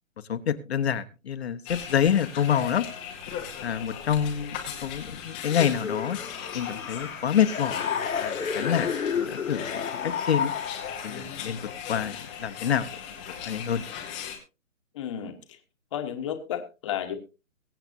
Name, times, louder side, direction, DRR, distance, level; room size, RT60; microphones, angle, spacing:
voice 1, 0.3-2.8 3.6-6.2 6.5-10.5 11.0-13.9, left 8 dB, 50° left, 12 dB, 1.0 m, -27 dB
sound 1, 1.7-14.4, left 8 dB, 5° left, 0.7 m, -38 dB
sound 2, 5.5-11.3, left 6 dB, 90° left, 2.2 m, -31 dB
voice 2, 14.9-15.4 15.9-17.2, left 9 dB, 25° left, 7 dB, 1.2 m, -32 dB
22.5 x 8.0 x 2.7 m, 0.30 s
hypercardioid pair, 165°, 41 cm